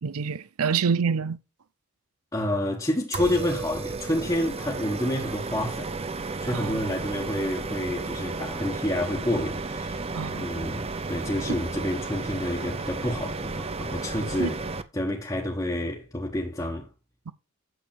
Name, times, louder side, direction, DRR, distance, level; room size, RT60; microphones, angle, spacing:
voice 1, 0.0-1.4 6.5-6.8 10.1-10.4 11.5-11.6 14.4-14.5 17.3-17.4, right 6 dB, 85° right, 0.6 m, -27 dB
voice 2, 2.3-10.0 10.3-14.6 14.9-16.9, left 1 dB, 15° left, 1.3 m, -29 dB
sound 1, 3.1-14.8, right 3 dB, 25° right, 0.6 m, -33 dB
8.9 x 7.2 x 4.3 m
head